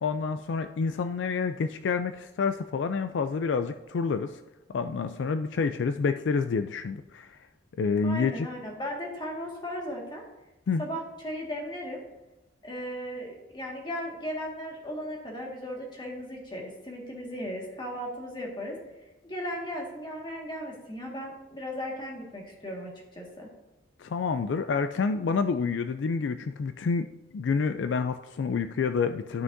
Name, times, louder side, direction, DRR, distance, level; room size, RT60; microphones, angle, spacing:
voice 1, 0.0-4.4 4.7-7.4 7.8-8.5 10.7-10.8 24.0-27.1 27.3-29.4, left 5 dB, 75° left, 10 dB, 0.3 m, -28 dB
voice 2, 8.0-10.2 10.8-12.0 12.6-18.8 19.2-23.5, equal, 25° left, -1 dB, 1.8 m, -36 dB
12.5 x 5.7 x 2.7 m, 1.0 s
head